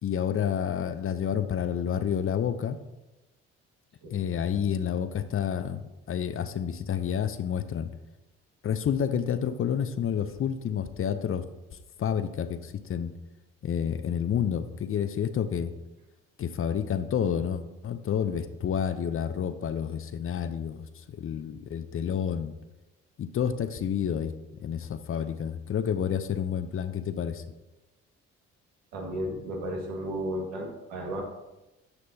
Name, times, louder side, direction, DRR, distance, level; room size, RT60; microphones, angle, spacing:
voice 1, 0.0-2.8 4.1-7.9 8.6-11.4 12.0-13.1 13.6-15.7 16.4-22.6 23.2-24.3 24.6-27.4, left 8 dB, 45° left, 11 dB, 0.6 m, -29 dB
voice 2, 28.9-31.2, right 1 dB, 85° right, -1 dB, 1.8 m, -34 dB
9.8 x 6.0 x 2.8 m, 1.0 s
supercardioid pair, 60°, 30 cm